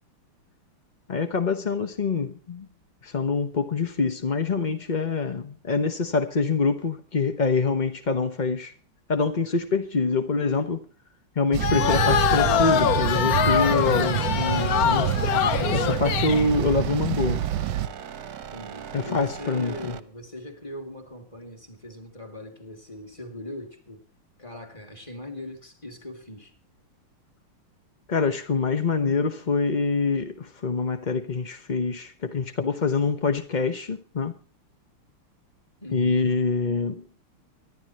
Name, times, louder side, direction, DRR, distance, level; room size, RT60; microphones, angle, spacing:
voice 1, 1.1-2.7 3.0-8.7 9.1-10.9 11.3-15.1 15.7-17.4 18.9-20.0 28.1-34.4 35.9-37.1, left 4 dB, 50° left, 0.5 m, -25 dB
sound 1, 11.5-17.9, right 11 dB, 70° right, 1.4 m, -27 dB
sound 2, 11.6-16.5, left 9 dB, 65° left, 0.9 m, -23 dB
sound 3, 13.4-20.0, right 9 dB, 55° right, 1.3 m, -39 dB
voice 2, 18.5-24.0 24.4-26.5 35.8-36.2, left 1 dB, 15° left, 2.8 m, -40 dB
24.0 x 11.5 x 3.0 m
omnidirectional pair, 2.4 m